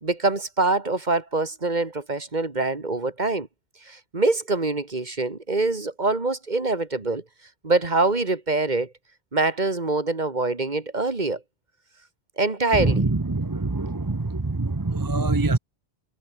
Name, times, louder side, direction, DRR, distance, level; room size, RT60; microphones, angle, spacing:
voice 1, 0.0-3.5 3.8-7.2 7.6-8.9 9.3-11.4 12.4-13.1, right 3 dB, 45° right, 2.2 m, -24 dB
voice 2, 13.3-14.2 14.6-15.6, right 3 dB, 20° right, 0.9 m, -25 dB
omnidirectional pair, 1.1 m